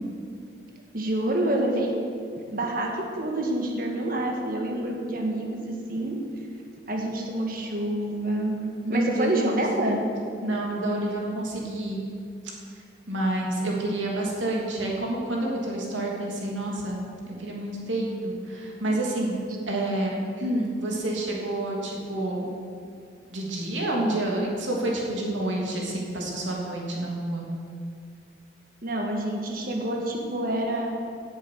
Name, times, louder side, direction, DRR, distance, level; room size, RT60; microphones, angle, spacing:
voice 1, 0.9-1.9 2.5-6.2 6.9-8.6 8.9-10.0 28.8-30.9, right 1 dB, 50° right, 1 dB, 1.7 m, -27 dB
voice 2, 8.8-9.6 10.4-12.0 13.1-17.0 17.3-19.3 19.7-22.5 23.3-27.4, right 1 dB, 90° right, -2 dB, 3.1 m, -28 dB
16.5 x 8.4 x 6.7 m, 2.3 s
head